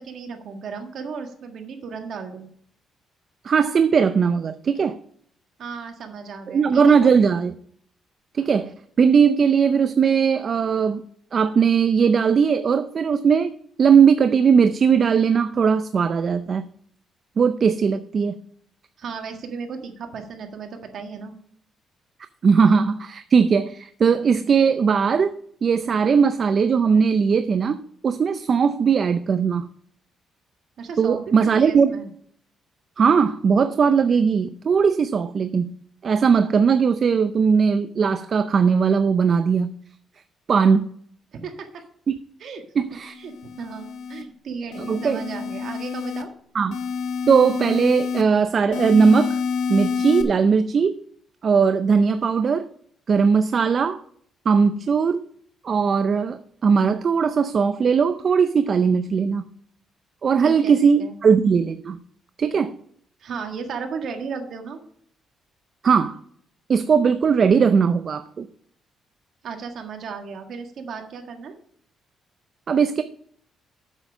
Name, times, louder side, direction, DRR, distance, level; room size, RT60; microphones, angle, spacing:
voice 1, 0.0-2.5 5.6-7.3 19.0-21.4 30.8-32.1 41.3-41.8 42.4-42.6 43.2-46.3 60.4-61.1 63.2-64.8 69.4-71.5, right 5 dB, 65° right, 1.7 m, -35 dB
voice 2, 3.4-5.0 6.5-7.5 8.3-11.0 11.3-16.7 17.4-18.4 22.4-25.3 25.6-29.7 31.0-32.0 33.0-35.7 36.0-39.7 40.5-40.9 42.8-43.1 44.8-45.2 46.5-46.8 47.3-49.4 49.7-51.0 51.4-52.7 53.1-54.0 54.5-55.2 55.6-59.5 60.2-62.0 62.4-62.7 65.8-66.2 66.7-68.5 72.7-73.0, right 6 dB, 50° right, 0.5 m, -19 dB
sound 1, 43.1-44.2 44.7-46.2 46.7-48.2 48.7-50.2, left 5 dB, 85° left, 1.2 m, -28 dB
7.8 x 7.3 x 5.0 m
cardioid pair, 90°, 0 cm